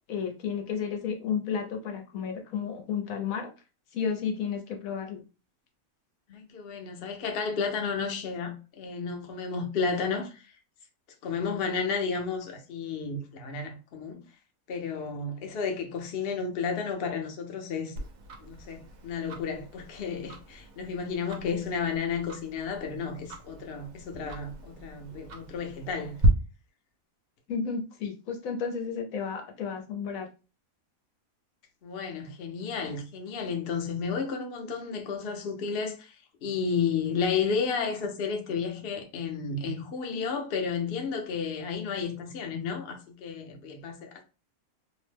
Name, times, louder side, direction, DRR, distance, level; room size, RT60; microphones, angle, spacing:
voice 1, 0.1-3.5 3.9-5.2 27.5-30.3, left 6 dB, 80° left, 1.1 m, -32 dB
voice 2, 6.3-10.4 11.2-14.2 14.7-18.0 18.4-26.2 31.8-44.2, left 5 dB, 55° left, 0.8 m, -32 dB
Tick-tock, 18.0-26.3, equal, 80° right, 1.1 m, -37 dB
2.8 x 2.1 x 3.2 m
omnidirectional pair, 1.5 m